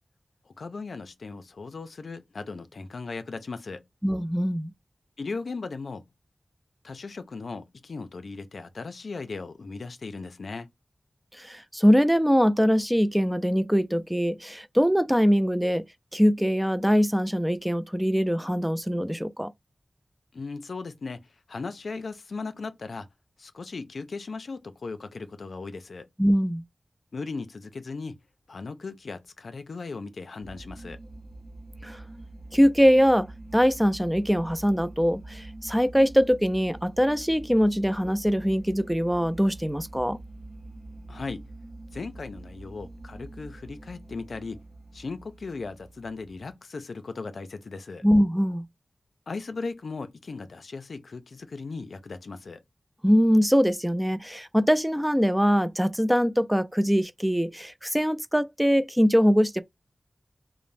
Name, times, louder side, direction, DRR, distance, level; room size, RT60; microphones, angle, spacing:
voice 1, 0.5-3.8 5.2-6.0 6.8-10.7 20.3-23.1 23.4-26.1 27.1-28.2 28.5-31.0 41.1-41.5 41.9-44.6 44.9-48.1 49.3-52.6, left 4 dB, 90° left, 0.4 m, -37 dB
voice 2, 4.0-4.7 11.3-15.8 16.1-19.5 26.2-26.6 31.8-32.0 32.5-40.2 48.0-48.6 53.0-59.6, equal, 5° right, 0.3 m, -22 dB
sound 1, 30.4-46.5, right 2 dB, 40° right, 0.6 m, -45 dB
2.5 x 2.0 x 3.1 m
wide cardioid pair, 60°, 0 cm